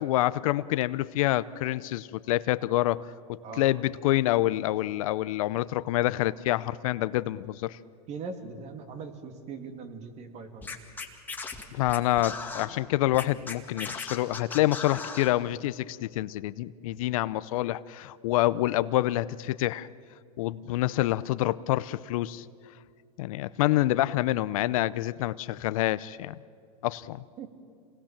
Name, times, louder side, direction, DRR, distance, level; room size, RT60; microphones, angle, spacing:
voice 1, 0.0-3.1 3.6-7.8 11.7-19.9 20.4-22.4 23.2-26.4 26.8-27.2, left 16 dB, 60° left, 16 dB, 0.7 m, -27 dB
voice 2, 3.4-3.8 8.1-10.7 16.9-17.1 27.4-27.5, right 4 dB, 35° right, 6 dB, 2.6 m, -41 dB
Scratching (performance technique), 10.6-12.7 13.1-15.3, left 4 dB, 10° left, 2.1 m, -37 dB
27.5 x 19.0 x 7.4 m, 2.3 s
hypercardioid pair, 130°, 20 cm